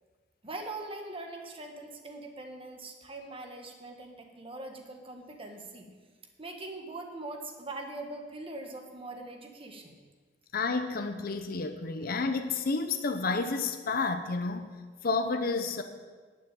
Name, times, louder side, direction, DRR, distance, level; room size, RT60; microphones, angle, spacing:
voice 1, 0.4-5.9 6.4-10.0, right 2 dB, 30° right, 3 dB, 1.5 m, -42 dB
voice 2, 10.5-14.7 15.0-15.8, left 4 dB, 50° left, 7 dB, 0.7 m, -30 dB
11.0 x 6.2 x 9.2 m, 1.4 s
head